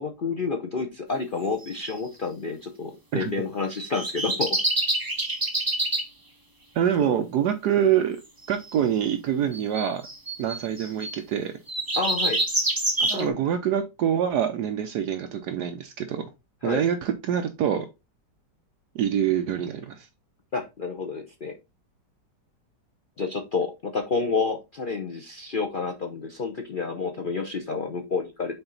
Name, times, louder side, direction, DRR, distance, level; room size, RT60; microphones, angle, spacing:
voice 1, 0.0-4.6 7.0-7.1 12.0-12.4 13.0-13.4 16.6-16.8 20.5-21.5 23.2-28.6, left 4 dB, 60° left, 3 dB, 0.5 m, -29 dB
sound 1, 1.7-1.9 3.8-6.0 8.4-8.7 9.5-11.2 11.7-13.2, right 2 dB, 15° right, 0.9 m, -26 dB
voice 2, 6.7-8.2 8.5-10.1 10.4-11.5 13.0-16.3 16.6-17.9 18.9-20.1, right 9 dB, 70° right, 8 dB, 1.1 m, -25 dB
5.9 x 4.4 x 3.9 m, 0.25 s
omnidirectional pair, 1.9 m